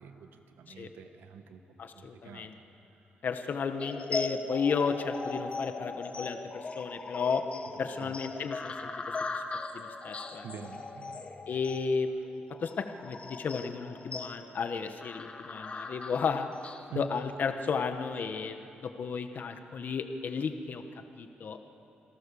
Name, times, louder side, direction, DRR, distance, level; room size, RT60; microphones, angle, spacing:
voice 1, 0.0-1.7 1.9-2.6 7.8-8.1 10.4-11.3 16.9-17.1, right 7 dB, 85° right, 7 dB, 1.5 m, -45 dB
voice 2, 1.8-2.5 3.2-7.4 7.8-8.9 9.3-9.4 9.7-10.4 11.5-16.5 16.9-18.6 18.8-20.8 21.2-21.6, left 5 dB, 55° left, 7 dB, 1.3 m, -33 dB
sound 1, 3.8-16.8, left 3 dB, 35° left, 1.5 m, -39 dB
27.5 x 17.5 x 7.0 m, 2.9 s
cardioid pair, 100°, 4 cm